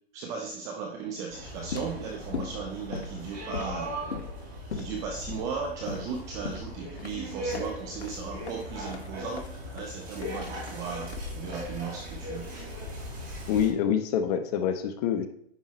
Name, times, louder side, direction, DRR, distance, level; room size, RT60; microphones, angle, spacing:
voice 1, 0.1-12.7, right 5 dB, 10° right, 2 dB, 0.3 m, -37 dB
sound 1, 1.3-13.7, equal, 25° right, 4.1 m, -39 dB
sound 2, 1.6-11.7, left 5 dB, 80° left, 1.7 m, -40 dB
voice 2, 13.5-15.3, left 8 dB, 35° left, 8 dB, 1.1 m, -26 dB
10.5 x 6.0 x 4.1 m, 0.72 s
hypercardioid pair, 145°, 32 cm